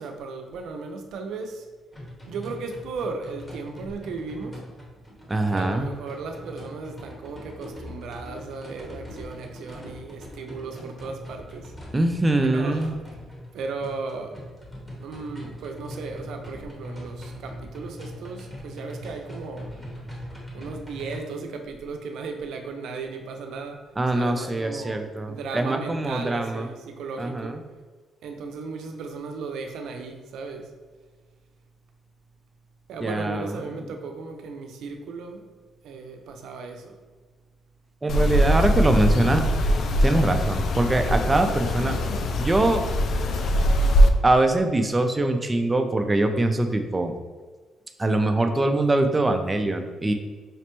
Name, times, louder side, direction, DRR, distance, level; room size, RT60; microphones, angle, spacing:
voice 1, 0.0-1.7 2.3-4.6 5.5-11.7 12.5-12.9 13.5-14.4 15.0-19.7 20.5-27.6 28.2-30.7 32.9-35.5 35.8-36.9 41.4-41.8, right 4 dB, 80° right, 4 dB, 0.5 m, -36 dB
sound 1, 1.9-21.2, equal, 15° left, 1.0 m, -41 dB
voice 2, 5.3-5.9 11.9-12.9 24.0-26.7 27.2-27.6 33.0-33.5 38.0-39.4 40.0-42.0 42.4-42.8 44.2-47.1 48.0-50.1, right 2 dB, 20° right, 6 dB, 0.4 m, -23 dB
sound 2, 38.1-44.1, equal, 60° left, 0.3 m, -22 dB
5.0 x 2.1 x 2.9 m, 1.4 s
cardioid pair, 90°, 0 cm